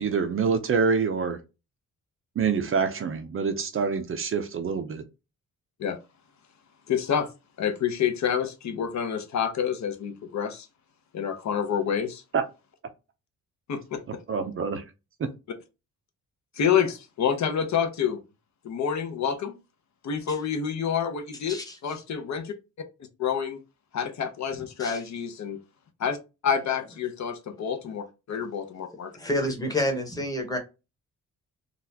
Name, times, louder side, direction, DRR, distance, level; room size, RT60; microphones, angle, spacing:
voice 1, 0.0-1.4 2.4-5.0 12.3-12.4 14.3-14.8 15.2-15.3, right 5 dB, 40° right, 0.5 m, -26 dB
voice 2, 6.9-7.3 7.6-10.7 11.1-12.2 13.7-14.2 16.6-18.2 18.6-19.5 20.0-21.6 21.8-22.5 23.2-23.6 23.9-25.6 26.0-26.2 26.4-29.1, left 7 dB, 60° left, 0.7 m, -28 dB
voice 3, 29.1-30.6, left 1 dB, 10° left, 1.0 m, -29 dB
4.0 x 2.3 x 2.7 m
wide cardioid pair, 150°, 32 cm